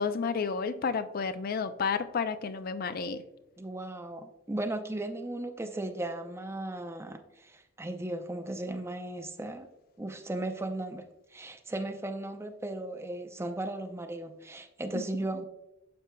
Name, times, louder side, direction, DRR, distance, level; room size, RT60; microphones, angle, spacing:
voice 1, 0.0-3.2 14.9-15.0, left 5 dB, 45° left, 0.4 m, -31 dB
voice 2, 3.6-9.7 10.0-11.0 11.3-15.4, right 1 dB, 15° right, 0.5 m, -36 dB
12.0 x 4.4 x 2.2 m
head